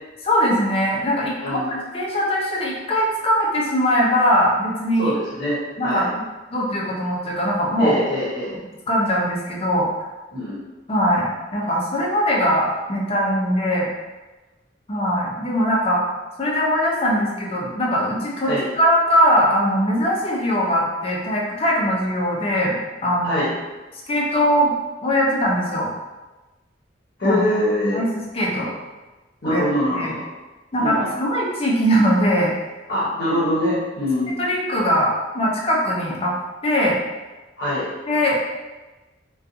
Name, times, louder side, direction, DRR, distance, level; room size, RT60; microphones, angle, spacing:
voice 1, 0.2-5.1 5.8-6.2 6.5-8.0 8.9-9.9 10.9-13.9 14.9-16.0 16.4-22.8 23.0-23.4 24.1-24.7 25.0-25.9 27.2-27.4 27.9-28.8 29.4-29.6 29.9-30.1 30.7-32.5 34.4-36.3 36.6-37.0 38.1-38.4, equal, 30° left, -3 dB, 0.5 m, -21 dB
voice 2, 1.4-1.8 5.0-5.6 5.8-6.1 7.8-8.5 10.3-10.6 18.4-18.6 23.2-23.5 27.2-28.0 29.4-30.3 30.8-31.1 32.9-34.4 37.6-37.9, left 1 dB, 55° left, -9 dB, 0.8 m, -23 dB
2.5 x 2.3 x 2.6 m, 1.2 s
head